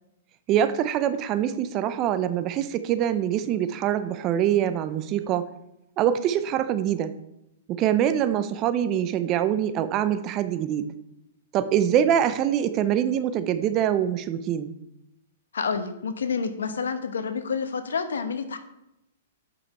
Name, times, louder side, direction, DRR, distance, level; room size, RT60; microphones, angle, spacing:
voice 1, 0.5-5.5 6.0-7.1 7.7-10.9 11.5-14.7, right 10 dB, 30° right, 12 dB, 0.6 m, -24 dB
voice 2, 15.5-18.6, left 5 dB, 90° left, 10 dB, 1.0 m, -29 dB
8.6 x 5.5 x 4.2 m, 0.84 s
hypercardioid pair, 140°, 0 cm